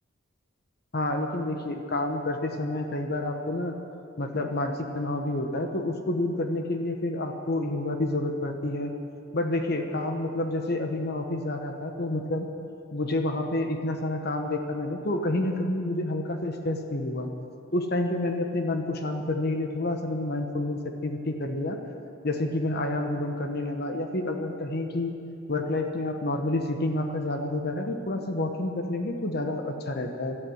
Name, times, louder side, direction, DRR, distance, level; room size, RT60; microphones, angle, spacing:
voice 1, 0.9-3.7 4.2-8.9 9.3-12.5 12.9-17.3 17.7-21.8 22.2-25.2 25.5-30.4, left 2 dB, 55° left, 4 dB, 1.1 m, -29 dB
17.5 x 12.5 x 6.5 m, 2.7 s
head